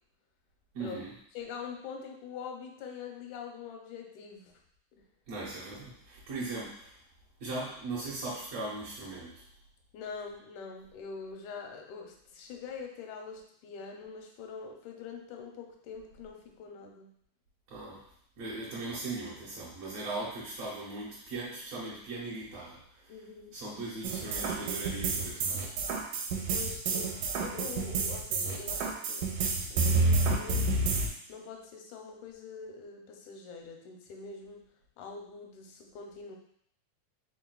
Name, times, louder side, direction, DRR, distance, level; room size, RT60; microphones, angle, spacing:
voice 1, 0.7-1.1 5.3-7.0 7.4-9.4 17.7-18.0 18.4-23.1 23.5-25.7, right 2 dB, 70° right, -8 dB, 1.7 m, -39 dB
voice 2, 1.3-4.6 9.9-17.1 23.1-23.5 26.4-27.1 27.4-29.3 29.7-30.9 31.3-34.6 35.0-36.4, left 5 dB, 85° left, 2 dB, 2.0 m, -44 dB
sound 1, 24.0-31.1, right 3 dB, 85° right, 2.0 m, -29 dB
4.7 x 3.7 x 2.2 m, 0.67 s
omnidirectional pair, 3.4 m